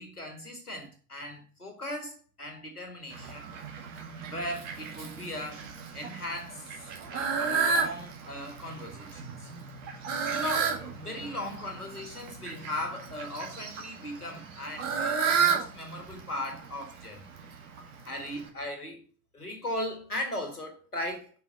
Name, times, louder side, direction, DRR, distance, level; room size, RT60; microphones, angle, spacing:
voice 1, 0.0-3.5 4.3-5.6 5.9-6.7 7.1-9.5 10.3-17.3 18.0-19.0 19.3-21.3, left 1 dB, 90° left, 1.7 m, -38 dB
Fowl, 3.1-18.5, right 6 dB, 60° right, 2.0 m, -33 dB
5.5 x 5.3 x 6.3 m
figure-of-eight pair, 70°, 44 cm